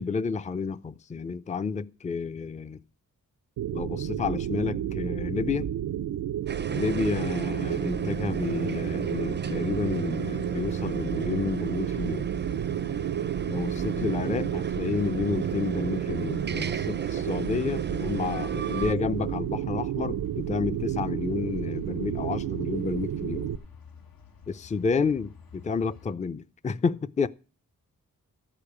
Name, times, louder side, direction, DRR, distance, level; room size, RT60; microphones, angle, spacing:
voice 1, 0.0-2.8 3.7-5.7 6.7-12.3 13.5-23.5 24.5-27.3, left 5 dB, 20° left, 0.5 m, -30 dB
sound 1, 3.6-23.6, right 10 dB, 85° right, 0.6 m, -31 dB
sound 2, 6.4-26.1, left 6 dB, 80° left, 1.2 m, -54 dB
sound 3, 6.5-18.9, right 5 dB, 30° right, 0.5 m, -35 dB
13.5 x 5.1 x 8.4 m
cardioid pair, 65°, 35 cm